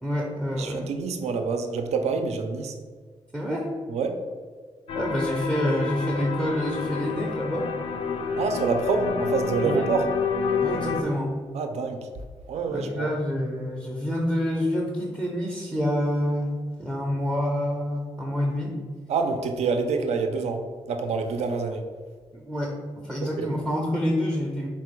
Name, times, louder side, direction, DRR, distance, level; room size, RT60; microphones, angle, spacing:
voice 1, 0.0-0.9 3.3-3.7 5.0-7.7 9.6-9.8 10.6-11.3 12.7-18.8 22.3-24.7, equal, 5° right, -2 dB, 0.5 m, -27 dB
voice 2, 0.5-2.8 3.9-4.2 8.4-10.1 11.5-12.1 12.5-13.1 19.1-21.8 23.2-23.5, right 4 dB, 90° right, 6 dB, 0.5 m, -27 dB
sound 1, 4.9-11.0, left 5 dB, 60° left, 0.4 m, -29 dB
4.3 x 2.3 x 4.4 m, 1.6 s
wide cardioid pair, 150°, 11 cm